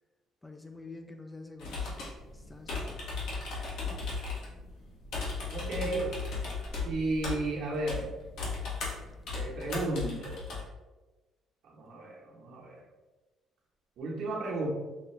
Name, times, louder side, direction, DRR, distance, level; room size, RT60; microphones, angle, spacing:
voice 1, 0.4-1.9 2.3-3.0 5.8-6.1, left 3 dB, 10° left, 5 dB, 0.4 m, -46 dB
sound 1, 1.6-10.6, left 4 dB, 80° left, 1.4 m, -37 dB
voice 2, 5.5-6.0 6.8-8.0 9.3-10.4 11.6-12.8 14.0-14.7, right 2 dB, 70° right, -3 dB, 1.2 m, -34 dB
6.0 x 2.4 x 3.2 m, 1.2 s
cardioid pair, 135°, 0 cm